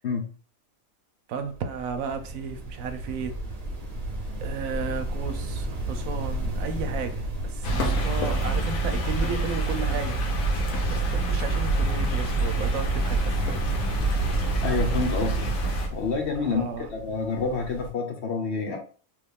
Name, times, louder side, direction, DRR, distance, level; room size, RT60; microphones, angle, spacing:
voice 1, 1.3-3.4 4.4-10.2 10.9-13.3 16.4-16.9, right 5 dB, 75° right, 8 dB, 1.0 m, -34 dB
sound 1, 1.4-17.9, right 1 dB, 35° right, 0.7 m, -34 dB
sound 2, 7.6-15.9, right 2 dB, 80° left, 1.2 m, -26 dB
voice 2, 14.6-15.5 15.9-18.8, left 5 dB, 60° left, 3 dB, 0.9 m, -28 dB
3.2 x 2.3 x 3.5 m, 0.39 s
omnidirectional pair, 1.4 m